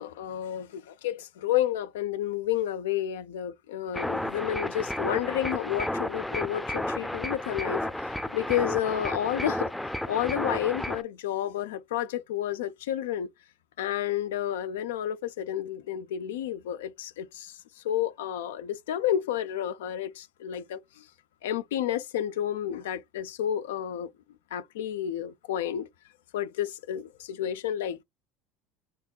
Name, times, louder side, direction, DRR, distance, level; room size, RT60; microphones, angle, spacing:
voice 1, 0.0-9.7 10.1-13.3 13.8-21.1 21.4-24.1 24.5-25.9 26.3-28.0, left 11 dB, 80° left, 0.3 m, -31 dB
sound 1, 3.9-11.0, left 1 dB, 5° left, 0.5 m, -32 dB
4.4 x 2.8 x 2.3 m
hypercardioid pair, 75°, 0 cm